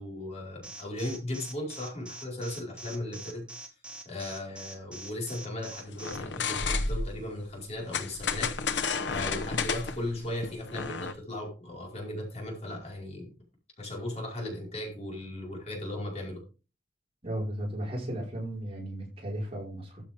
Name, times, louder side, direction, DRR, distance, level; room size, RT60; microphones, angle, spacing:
voice 1, 0.0-3.5 4.0-8.5 9.0-13.3 13.8-16.4, left 1 dB, 40° left, 4.8 m, -37 dB
Alarm, 0.6-6.2, right 1 dB, 5° right, 2.1 m, -43 dB
sound 1, 6.0-7.2 7.9-11.1, left 4 dB, 85° left, 1.0 m, -31 dB
voice 2, 17.2-20.0, right 1 dB, 35° right, 5.1 m, -35 dB
13.5 x 7.4 x 3.6 m
head